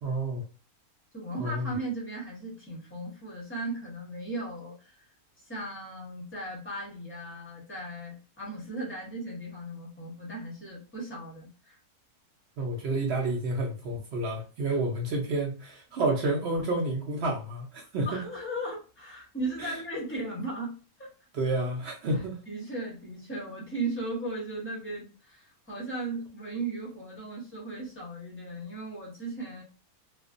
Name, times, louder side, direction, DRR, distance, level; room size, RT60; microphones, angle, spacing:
voice 1, 0.0-0.4 1.3-1.7 12.6-18.2 19.6-19.7 21.3-22.4, right 2 dB, 65° right, 0.6 m, -30 dB
voice 2, 1.1-5.0 5.4-11.8 14.7-14.8 18.0-21.1 22.1-29.6, right 2 dB, 15° left, 0.5 m, -37 dB
2.4 x 2.2 x 2.4 m
omnidirectional pair, 1.6 m